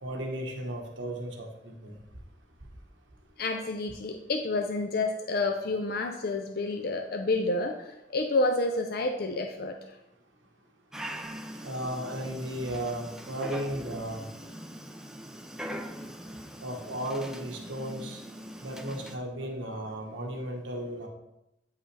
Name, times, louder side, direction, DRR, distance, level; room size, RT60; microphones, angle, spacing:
voice 1, 0.0-1.9 11.6-14.3 16.6-18.2 18.6-21.1, right 1 dB, 90° right, 1 dB, 1.2 m, -35 dB
voice 2, 3.4-9.7, left 2 dB, 55° left, 4 dB, 0.5 m, -29 dB
Dog, 10.9-19.2, equal, 5° right, 0.4 m, -42 dB
8.6 x 5.6 x 3.3 m, 0.88 s
head